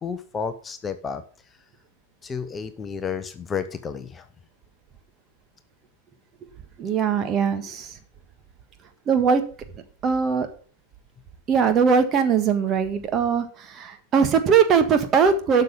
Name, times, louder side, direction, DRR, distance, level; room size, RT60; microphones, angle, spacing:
voice 1, 0.0-1.2 2.2-4.3, left 6 dB, 20° left, 10 dB, 0.9 m, -31 dB
voice 2, 6.8-8.0 9.1-9.4 10.0-10.5 11.5-15.6, right 6 dB, 30° right, 8 dB, 1.6 m, -20 dB
12.0 x 6.7 x 5.3 m, 0.42 s
figure-of-eight pair, 90°, 0 cm